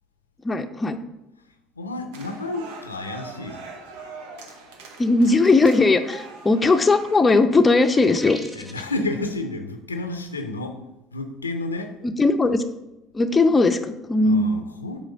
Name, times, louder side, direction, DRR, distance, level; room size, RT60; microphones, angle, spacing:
voice 1, 0.4-1.0 5.0-8.4 12.2-12.6 13.1-14.6, left 3 dB, 20° left, 7 dB, 0.6 m, -18 dB
voice 2, 1.8-3.6 8.5-10.8 11.1-12.0 14.2-15.0, left 2 dB, 90° left, 6 dB, 0.5 m, -30 dB
sound 1, 2.1-7.2, right 3 dB, 70° right, 0.9 m, -42 dB
sound 2, 7.6-9.0, equal, 5° right, 1.2 m, -39 dB
8.2 x 3.1 x 5.3 m, 0.93 s
figure-of-eight pair, 60°, 0 cm